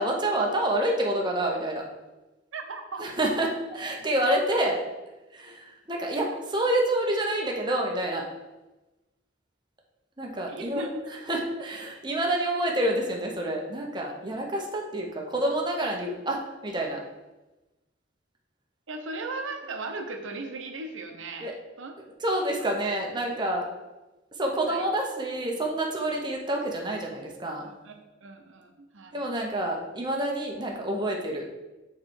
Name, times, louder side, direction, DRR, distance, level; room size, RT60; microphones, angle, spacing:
voice 1, 0.0-1.8 3.0-4.8 5.3-8.3 10.2-10.9 11.3-17.0 21.4-21.5 22.2-23.7 24.4-27.7 29.1-31.5, right 1 dB, 25° right, 0 dB, 0.9 m, -28 dB
voice 2, 2.5-3.0 10.5-11.0 18.9-21.5 21.8-21.9 24.7-24.9 27.6-29.3, right 3 dB, 75° right, 5 dB, 0.8 m, -37 dB
6.4 x 3.2 x 4.8 m, 1.1 s
head